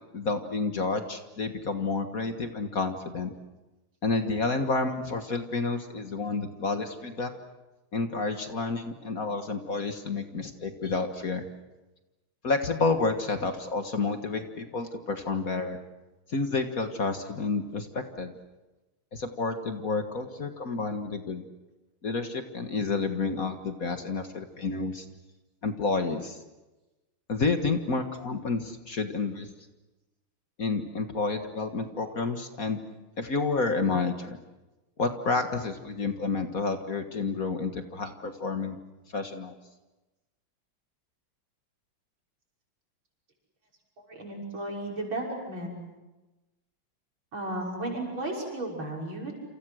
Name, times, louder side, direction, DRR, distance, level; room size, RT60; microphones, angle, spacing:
voice 1, 0.1-3.3 4.0-7.3 7.9-11.5 12.4-15.8 16.3-18.3 19.1-21.4 22.0-25.1 25.6-26.4 27.3-29.5 30.6-32.8 33.2-34.4 35.0-38.8 39.1-39.5, left 3 dB, 45° left, 7 dB, 1.8 m, -30 dB
voice 2, 44.1-45.8 47.3-49.4, right 1 dB, 70° right, -1 dB, 6.9 m, -34 dB
28.5 x 27.5 x 6.4 m, 1.1 s
omnidirectional pair, 2.3 m